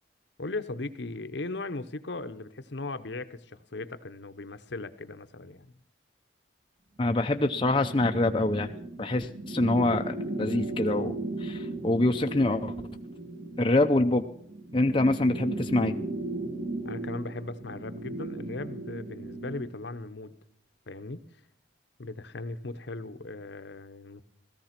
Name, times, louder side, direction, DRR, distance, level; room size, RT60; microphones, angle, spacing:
voice 1, 0.4-5.7 16.8-20.4 20.9-21.2 22.0-24.2, left 2 dB, 60° left, 11 dB, 0.9 m, -38 dB
voice 2, 7.0-8.7 9.0-12.7 13.6-14.2 14.7-16.0, left 2 dB, 25° left, 5 dB, 0.6 m, -25 dB
sound 1, 7.4-19.7, right 2 dB, 45° right, 2.2 m, -36 dB
16.5 x 14.0 x 5.9 m, 0.65 s
head